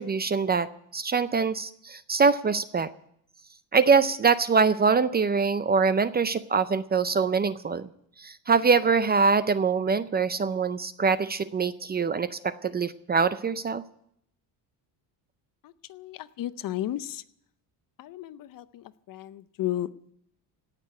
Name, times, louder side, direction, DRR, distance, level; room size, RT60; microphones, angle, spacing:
voice 1, 0.0-2.9 3.7-7.9 8.2-13.8, right 5 dB, 25° right, 14 dB, 0.5 m, -24 dB
voice 2, 15.6-17.2 18.0-20.1, left 13 dB, 50° left, 15 dB, 0.7 m, -34 dB
17.5 x 6.7 x 9.9 m, 0.71 s
cardioid pair, 130°, 42 cm